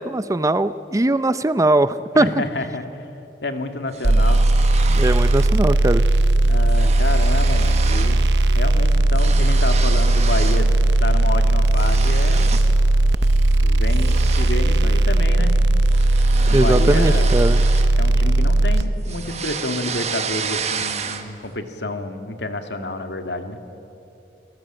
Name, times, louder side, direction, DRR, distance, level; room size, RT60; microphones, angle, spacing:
voice 1, 0.0-2.3 4.9-6.0 16.5-17.6, right 2 dB, 20° right, 14 dB, 0.5 m, -20 dB
voice 2, 2.1-3.0 3.4-4.4 6.4-8.3 8.5-10.7 11.0-12.5 13.6-15.6 16.5-17.4 18.0-23.6, left 2 dB, 75° left, 7 dB, 2.0 m, -28 dB
sound 1, 3.9-5.6 5.9-6.2 6.4-8.2 8.5-10.7 11.1-12.8 13.2-13.4 13.9-18.4 18.8-21.5, right 6 dB, 40° right, 1.4 m, -31 dB
sound 2, 4.0-18.8, right 2 dB, 85° right, 0.9 m, -17 dB
26.5 x 18.5 x 8.9 m, 3.0 s
head